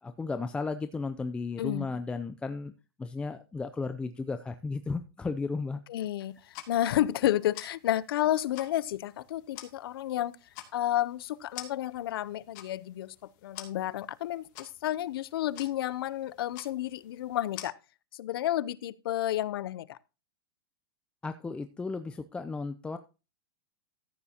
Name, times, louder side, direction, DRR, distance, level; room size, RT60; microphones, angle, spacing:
voice 1, 0.0-2.7 3.0-5.8 21.2-23.0, left 4 dB, 10° left, 0.5 m, -34 dB
voice 2, 5.9-6.4 6.7-10.3 10.7-13.1 13.4-17.7 18.2-20.0, left 13 dB, 75° left, 0.7 m, -31 dB
sound 1, 6.3-17.7, left 12 dB, 50° left, 2.6 m, -50 dB
14.0 x 9.6 x 2.9 m
supercardioid pair, 150°, 12 cm